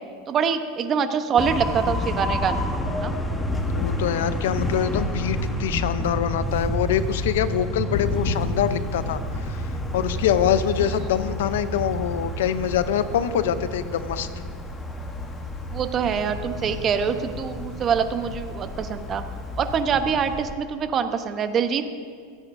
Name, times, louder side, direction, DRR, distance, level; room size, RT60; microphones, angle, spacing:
voice 1, 0.3-3.1 15.7-19.2 19.6-21.9, right 7 dB, 35° right, 9 dB, 0.9 m, -25 dB
sound 1, 1.4-20.5, equal, 10° left, 1.2 m, -30 dB
voice 2, 3.7-14.3, left 9 dB, 80° left, 13 dB, 0.6 m, -25 dB
Thunder, 7.9-19.8, left 4 dB, 55° left, 1.2 m, -37 dB
26.5 x 8.9 x 2.7 m, 2.1 s
hypercardioid pair, 105°, 0 cm